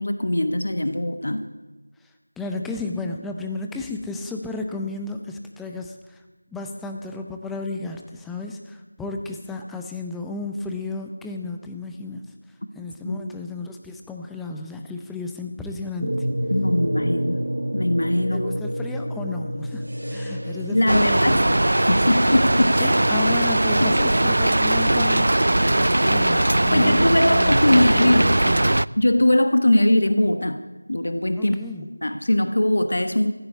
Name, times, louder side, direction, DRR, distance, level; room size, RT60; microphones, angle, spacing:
voice 1, 0.0-1.4 13.0-13.2 16.5-17.4 17.7-18.5 20.7-22.9 23.8-23.9 26.7-28.3 29.0-30.6 30.9-31.5 32.0-33.3, left 1 dB, 55° left, 9 dB, 1.2 m, -21 dB
voice 2, 2.0-12.2 12.7-16.3 18.3-21.5 22.8-28.7 31.4-31.9, left 3 dB, ahead, 3 dB, 0.5 m, -33 dB
sound 1, 16.0-29.3, equal, 85° right, 3.0 m, -31 dB
Rain, 20.9-28.9, right 1 dB, 60° right, 0.3 m, -19 dB
15.0 x 8.5 x 8.2 m, 1.2 s
figure-of-eight pair, 175°, 0 cm